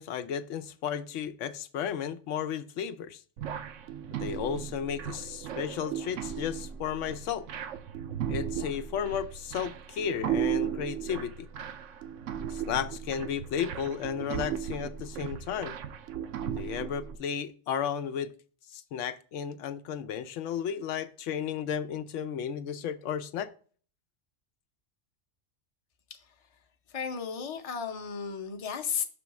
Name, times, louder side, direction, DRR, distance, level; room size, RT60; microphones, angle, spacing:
voice 1, 0.0-3.2 4.2-7.5 8.3-11.5 12.5-15.8 16.5-18.3 18.7-23.5, left 8 dB, 80° left, 0.9 m, -33 dB
sound 1, 3.4-17.2, right 9 dB, 85° right, 1.0 m, -36 dB
voice 2, 26.9-29.0, left 7 dB, 35° left, 0.7 m, -34 dB
6.1 x 3.1 x 5.8 m
omnidirectional pair, 1.2 m